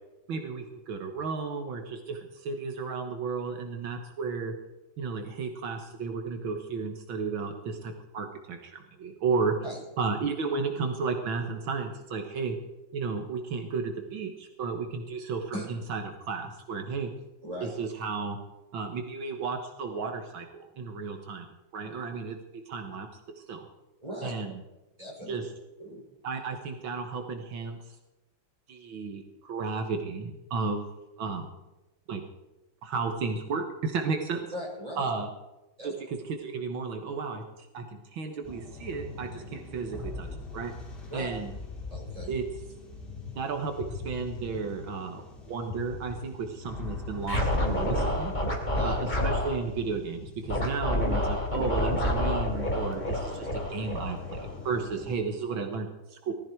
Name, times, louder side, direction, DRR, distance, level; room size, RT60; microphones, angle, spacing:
voice 1, 0.3-4.6 5.0-9.6 10.0-12.6 12.9-17.1 17.6-18.4 18.7-21.5 21.7-22.4 22.7-23.1 23.4-23.7 24.2-24.6 25.3-25.5 26.2-27.8 28.7-30.9 31.2-31.5 32.1-32.2 32.8-34.4 35.0-35.3 35.8-40.3 40.5-40.7 41.1-41.5 42.3-42.4 43.4-45.2 45.5-48.3 48.8-56.3, right 4 dB, 75° right, 4 dB, 2.1 m, -33 dB
voice 2, 24.0-24.3 25.0-25.4 25.8-26.0 34.5-35.1 35.8-36.0 41.1-41.3 41.9-42.4 48.7-49.0, equal, 15° right, -3 dB, 6.2 m, -39 dB
sound 1, 38.4-55.2, left 3 dB, 55° left, 3.7 m, -42 dB
Scratching (performance technique), 47.2-49.6 50.5-54.8, left 1 dB, 20° left, 3.4 m, -28 dB
20.0 x 13.5 x 4.6 m, 1.0 s
omnidirectional pair, 2.1 m